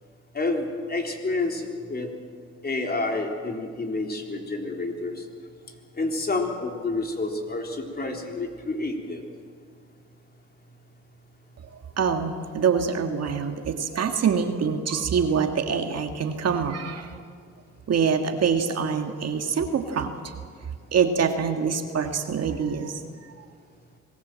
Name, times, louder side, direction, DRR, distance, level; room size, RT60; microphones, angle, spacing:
voice 1, 0.3-2.1 2.6-5.2 6.0-9.3, left 2 dB, 30° left, 2 dB, 3.7 m, -29 dB
voice 2, 12.0-17.1 17.9-20.3 20.9-23.0, right 6 dB, 55° right, 5 dB, 2.0 m, -25 dB
25.5 x 19.0 x 7.7 m, 2.1 s
cardioid pair, 90°, 30 cm